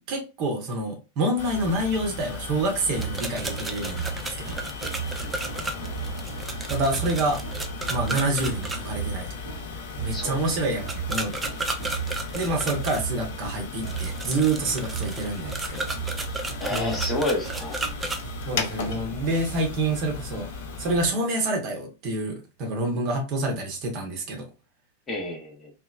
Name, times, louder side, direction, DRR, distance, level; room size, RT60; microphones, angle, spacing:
voice 1, 0.1-4.6 6.7-7.4 7.9-9.3 10.0-11.5 12.3-15.9 16.7-17.0 18.5-20.5 20.8-24.5, right 2 dB, 40° right, 0.8 m, -27 dB
sound 1, 1.4-21.1, left 5 dB, 55° left, 0.4 m, -37 dB
sound 2, 2.9-8.8 10.9-13.0 13.8-18.2, right 2 dB, 10° right, 0.4 m, -33 dB
sound 3, 2.9-19.1, right 8 dB, 75° right, 0.9 m, -36 dB
voice 2, 10.1-10.6 16.6-17.8 25.1-25.7, left 1 dB, 20° left, 0.7 m, -30 dB
2.9 x 2.0 x 2.3 m
figure-of-eight pair, 90°, 0 cm